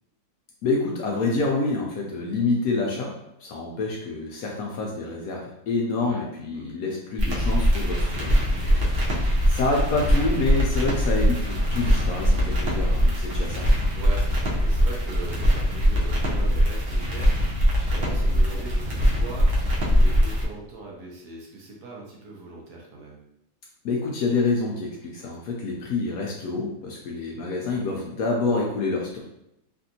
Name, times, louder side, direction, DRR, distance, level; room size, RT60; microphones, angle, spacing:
voice 1, 0.6-3.1 3.4-8.3 8.6-9.1 9.5-13.7 23.8-29.2, left 3 dB, 70° left, -2 dB, 0.9 m, -27 dB
sound 1, 7.2-20.4, equal, 55° right, 0.7 m, -22 dB
voice 2, 8.2-8.9 13.9-23.2, right 3 dB, 70° right, -2 dB, 1.3 m, -41 dB
3.4 x 2.5 x 2.7 m, 0.82 s
omnidirectional pair, 1.8 m